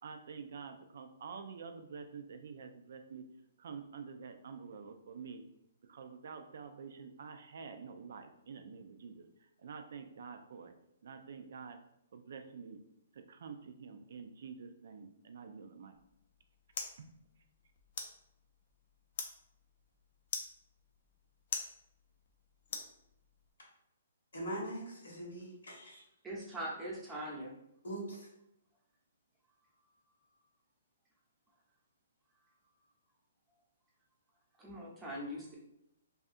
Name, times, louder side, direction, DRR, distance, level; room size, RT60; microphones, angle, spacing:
voice 1, 0.0-3.3 3.6-5.5 5.8-11.8 12.1-12.8 13.1-16.0 17.0-17.1, right 5 dB, 65° right, 7 dB, 0.3 m, -48 dB
sound 1, 15.9-23.5, left 5 dB, 55° left, 0.4 m, -46 dB
voice 2, 24.3-26.0 27.8-28.3, right 1 dB, 85° left, -3 dB, 1.2 m, -42 dB
voice 3, 26.2-27.5 34.6-35.5, right 1 dB, 15° right, -5 dB, 0.8 m, -41 dB
2.7 x 2.4 x 2.5 m, 0.80 s
hypercardioid pair, 140°, 0 cm